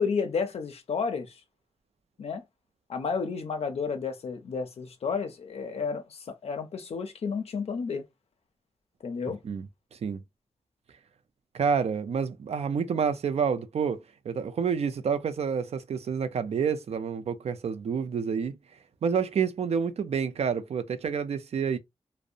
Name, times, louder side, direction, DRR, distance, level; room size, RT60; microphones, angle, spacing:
voice 1, 0.0-1.4 2.2-2.4 2.9-8.0 9.0-9.4, left 5 dB, 80° left, 0.4 m, -31 dB
voice 2, 9.4-10.2 11.5-18.6 19.0-21.8, right 6 dB, 85° right, 0.4 m, -29 dB
2.7 x 2.0 x 2.4 m
wide cardioid pair, 135°, 11 cm